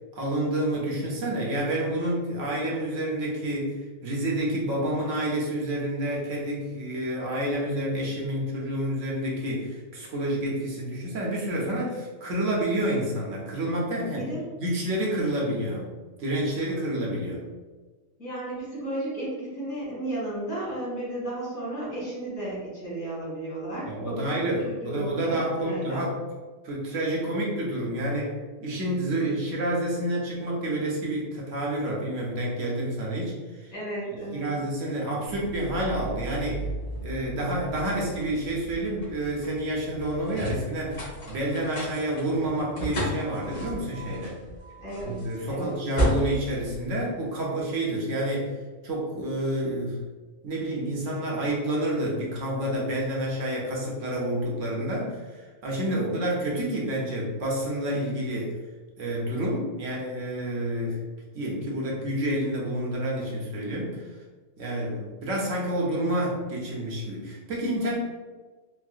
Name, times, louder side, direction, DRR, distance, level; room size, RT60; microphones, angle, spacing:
voice 1, 0.1-14.3 14.6-15.9 16.2-17.4 23.8-26.2 26.6-28.4 28.6-33.7 34.3-36.7 37.0-44.3 45.0-48.5 48.8-50.0 50.4-58.6 59.0-61.0 61.3-64.0 64.6-68.0, right 1 dB, 70° right, -3 dB, 1.1 m, -29 dB
voice 2, 14.1-14.4 18.2-26.1 33.7-34.4 44.8-45.7 55.9-56.1, right 1 dB, 85° left, -7 dB, 2.1 m, -34 dB
sound 1, 35.3-47.6, equal, 65° left, 1.5 m, -34 dB
4.5 x 2.0 x 2.4 m, 1.3 s
omnidirectional pair, 1.4 m